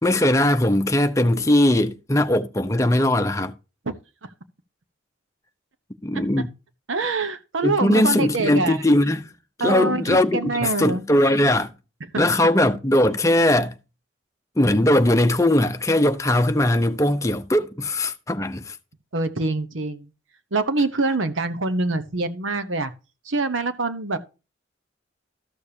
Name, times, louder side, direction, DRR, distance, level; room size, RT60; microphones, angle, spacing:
voice 1, 0.0-3.5 6.0-6.5 7.6-9.3 9.6-11.7 12.2-13.7 14.6-18.7, left 1 dB, 15° left, 0.7 m, -20 dB
voice 2, 6.9-8.8 9.6-11.0 19.1-20.1 20.5-22.9 23.3-24.2, right 3 dB, 85° right, 1.1 m, -25 dB
13.5 x 6.9 x 2.8 m
head